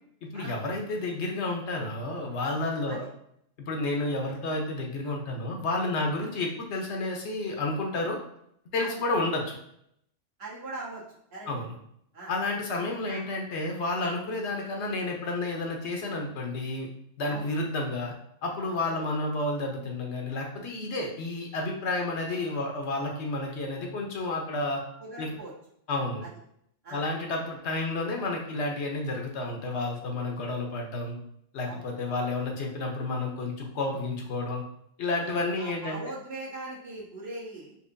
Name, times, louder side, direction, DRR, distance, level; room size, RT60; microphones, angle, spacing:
voice 1, 0.2-3.0 3.7-8.2 8.7-9.5 11.5-11.7 12.3-16.9 17.2-18.1 18.4-24.8 25.2-25.3 25.9-26.2 26.9-31.2 31.5-34.6 35.0-36.1, left 2 dB, 70° left, 1 dB, 1.0 m, -31 dB
voice 2, 10.4-11.0 11.3-11.5 12.1-12.3 13.0-13.2 17.3-17.5 18.8-19.0 25.0-25.5 26.2-26.3 26.8-27.0 31.6-31.8 35.0-35.3 35.6-37.8, right 2 dB, 60° right, -6 dB, 1.4 m, -40 dB
4.4 x 2.7 x 2.5 m, 0.72 s
omnidirectional pair, 1.2 m